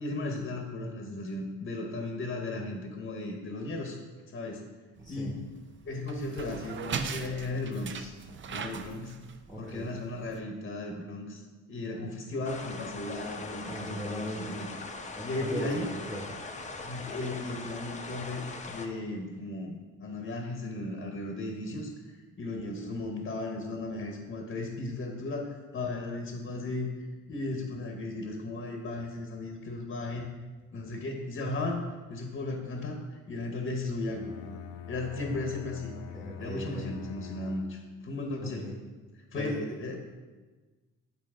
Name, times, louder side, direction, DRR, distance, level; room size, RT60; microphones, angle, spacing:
voice 1, 0.0-4.0 4.3-4.6 5.1-5.4 5.8-8.1 8.5-9.1 9.6-11.4 11.7-14.2 14.6-14.7 15.2-15.9 16.8-21.9 22.4-26.9 27.3-30.3 30.7-31.8 32.1-35.9 36.4-38.7 39.3-40.0, left 2 dB, 40° left, 2 dB, 1.0 m, -35 dB
voice 2, 5.0-5.3 9.5-9.9 13.7-14.7 15.2-16.3 35.9-37.0 38.4-38.8 39.3-40.0, equal, ahead, -3 dB, 1.1 m, -39 dB
sound 1, 5.0-10.4, right 5 dB, 40° right, 0.5 m, -39 dB
sound 2, 12.4-18.9, left 3 dB, 25° left, 0.7 m, -41 dB
Bowed string instrument, 34.0-38.1, left 8 dB, 85° left, 0.5 m, -44 dB
8.7 x 4.1 x 3.7 m, 1.3 s
cardioid pair, 90°, 30 cm